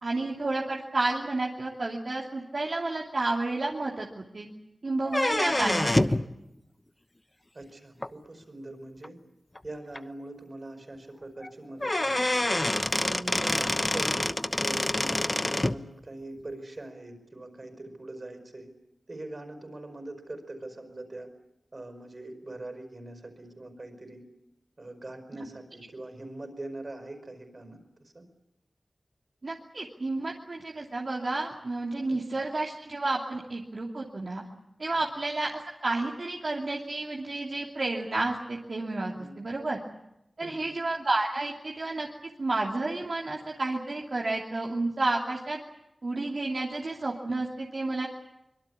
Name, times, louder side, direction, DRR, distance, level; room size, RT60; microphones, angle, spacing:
voice 1, 0.0-4.5 4.8-6.2 29.4-34.4 34.8-39.8 40.4-42.1 42.4-45.6 46.0-48.1, right 2 dB, 65° right, -2 dB, 2.9 m, -31 dB
sound 1, 5.1-6.3 8.0-8.1 9.0-9.1 9.6-9.7 10.0-10.1 11.4-11.5 11.8-15.8, left 1 dB, 25° left, 1.0 m, -26 dB
voice 2, 7.5-9.2 9.6-12.2 13.0-18.7 19.1-21.3 21.7-24.2 24.8-27.8 28.1-28.2 32.1-32.4 35.0-35.1 39.1-39.4 40.4-40.8, right 2 dB, 50° right, 7 dB, 5.5 m, -42 dB
25.0 x 22.5 x 8.4 m, 0.86 s
wide cardioid pair, 60°, 0 cm